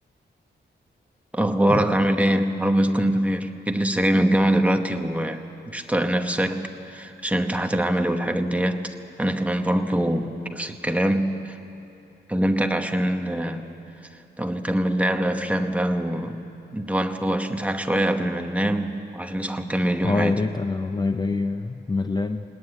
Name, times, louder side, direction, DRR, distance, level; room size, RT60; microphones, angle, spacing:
voice 1, 1.3-11.6 12.3-13.7 14.4-16.4 16.7-20.3, right 1 dB, 5° right, 6 dB, 1.0 m, -23 dB
voice 2, 20.0-22.4, left 3 dB, 20° left, 7 dB, 0.6 m, -25 dB
20.0 x 18.5 x 9.9 m, 2.8 s
wide cardioid pair, 150°, 19 cm